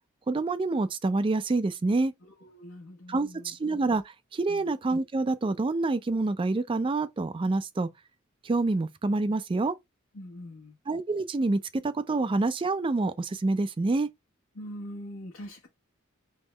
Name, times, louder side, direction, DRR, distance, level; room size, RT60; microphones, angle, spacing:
voice 1, 0.3-2.1 3.1-7.9 8.4-9.7 10.9-14.1, right 3 dB, 25° right, 0.4 m, -27 dB
voice 2, 2.4-3.5 4.5-4.7 10.1-10.7 14.6-15.7, equal, 75° left, 1.1 m, -42 dB
3.6 x 3.1 x 3.3 m
head